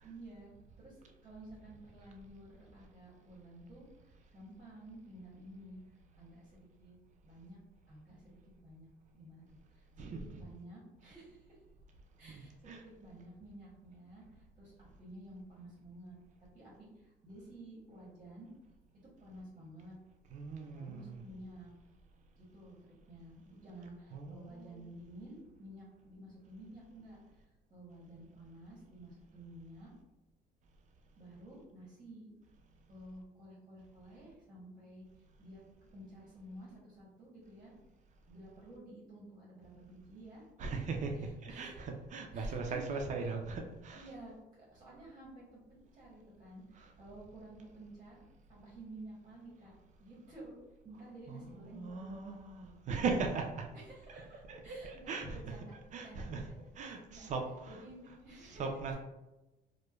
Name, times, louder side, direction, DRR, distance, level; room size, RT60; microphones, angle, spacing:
voice 1, 0.0-5.8 6.2-7.0 7.2-7.6 7.9-8.9 9.1-9.4 9.7-11.6 12.2-18.5 19.0-20.0 20.6-21.7 22.4-27.2 27.7-29.9 31.2-32.3 32.9-35.0 35.4-35.6 35.9-37.7 38.3-40.8 41.2-41.8 42.3-43.1 43.9-48.2 48.5-49.7 50.0-53.0 53.7-55.7 56.0-56.6 56.8-57.3 57.7-59.0, right 1 dB, 30° right, -5 dB, 0.8 m, -52 dB
voice 2, 10.0-10.4 12.2-12.8 20.3-21.2 24.1-24.9 40.6-44.1 46.7-46.9 51.3-53.7 54.5-55.5 55.9-56.4 56.8-57.8 58.4-59.0, right 4 dB, 45° right, 3 dB, 0.4 m, -39 dB
2.9 x 2.0 x 2.3 m, 1.0 s
cardioid pair, 110°, 17 cm